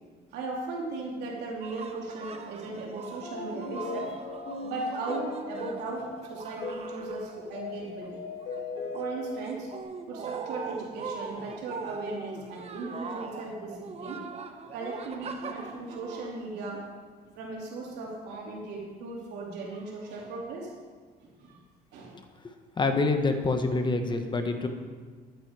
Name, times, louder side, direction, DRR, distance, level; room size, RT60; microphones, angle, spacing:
voice 1, 0.3-4.1 4.6-8.2 8.8-9.7 10.0-14.2 14.7-16.8 17.3-20.7 21.2-21.6 21.9-22.2, right 3 dB, 85° right, -2 dB, 3.3 m, -37 dB
sound 1, 1.5-7.8 8.0-17.0, right 5 dB, 40° right, 1.1 m, -41 dB
sound 2, 1.6-9.8, left 3 dB, 75° left, 2.4 m, -39 dB
voice 2, 22.8-24.7, left 3 dB, 25° left, 6 dB, 1.2 m, -26 dB
13.5 x 9.3 x 4.8 m, 1.5 s
cardioid pair, 110°, 17 cm